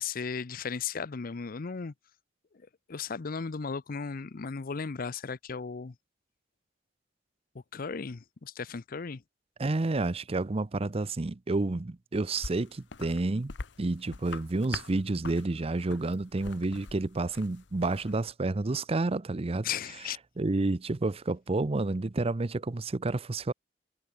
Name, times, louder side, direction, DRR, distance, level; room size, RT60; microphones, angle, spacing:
voice 1, 0.0-1.9 2.9-5.9 7.5-9.2 19.6-20.2, left 5 dB, 50° left, 0.6 m, -36 dB
voice 2, 9.6-13.5 13.8-19.7 20.4-23.5, right 2 dB, 35° right, 0.6 m, -30 dB
sound 1, 12.3-18.3, left 4 dB, 75° left, 0.9 m, -44 dB
head